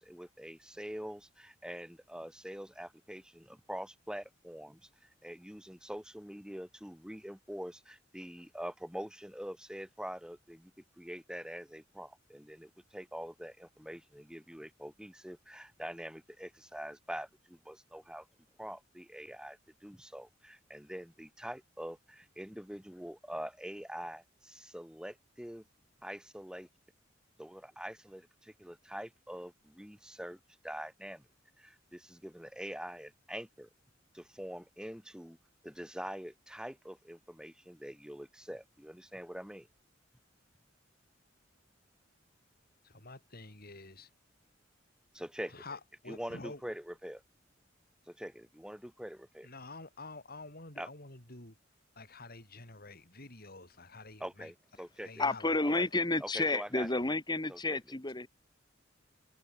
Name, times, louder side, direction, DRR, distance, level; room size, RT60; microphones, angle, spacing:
voice 1, 0.0-10.7 11.0-18.3 18.6-25.6 26.0-26.7 27.4-31.3 31.6-33.7 34.1-35.4 35.6-39.7 45.1-45.5 46.1-47.2 48.1-49.5 50.8-50.9 54.2-55.3 55.6-55.8 56.2-56.9 57.5-58.0, equal, 5° right, 2.5 m, -44 dB
voice 2, 42.8-44.1 45.5-46.6 49.4-51.6 52.0-54.5 55.0-55.8, left 3 dB, 50° left, 7.4 m, -48 dB
voice 3, 55.2-58.3, left 2 dB, 20° left, 1.9 m, -31 dB
head